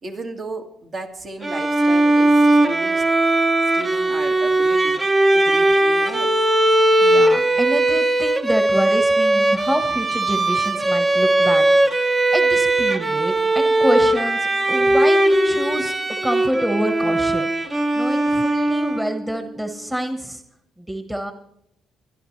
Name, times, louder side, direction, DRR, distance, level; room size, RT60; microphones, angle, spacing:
voice 1, 0.0-3.1 3.7-6.3, right 3 dB, 50° right, 3 dB, 2.0 m, -34 dB
Bowed string instrument, 1.4-19.3, right 1 dB, 25° right, 0.9 m, -18 dB
voice 2, 7.0-16.0 16.2-20.4 20.8-21.3, equal, 10° right, 6 dB, 1.3 m, -27 dB
24.0 x 11.5 x 3.3 m, 0.77 s
cardioid pair, 90°, 0 cm